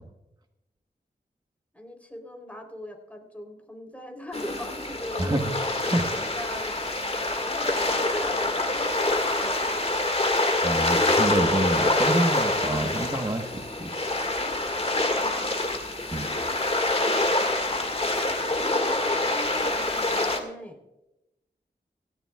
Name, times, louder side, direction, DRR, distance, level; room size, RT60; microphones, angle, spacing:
voice 1, 1.7-5.5 6.3-6.8 7.3-9.9 15.0-15.7 16.2-20.8, left 1 dB, 10° left, 3 dB, 3.6 m, -41 dB
sound 1, 4.3-20.4, left 2 dB, 35° left, 2.0 m, -26 dB
voice 2, 5.2-5.5 5.9-6.1 10.6-13.5 13.8-13.9 16.1-16.3, right 1 dB, 25° right, 4 dB, 1.3 m, -27 dB
17.0 x 14.0 x 2.4 m, 0.91 s
wide cardioid pair, 50°, 18 cm